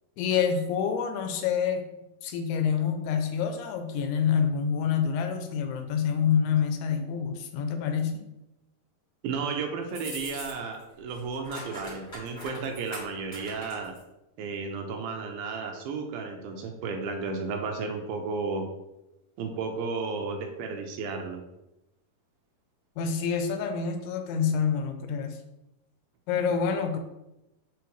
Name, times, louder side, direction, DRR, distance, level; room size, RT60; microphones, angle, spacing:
voice 1, 0.2-1.9 2.2-8.2 23.0-25.4 26.3-27.0, left 7 dB, 85° left, 6 dB, 2.7 m, -27 dB
voice 2, 9.2-13.9 14.4-18.7 19.4-21.4, right 4 dB, 80° right, 3 dB, 2.3 m, -33 dB
sound 1, 9.9-10.8 11.1-14.0, equal, 25° left, 1.9 m, -42 dB
7.0 x 4.3 x 3.1 m, 0.93 s
omnidirectional pair, 4.5 m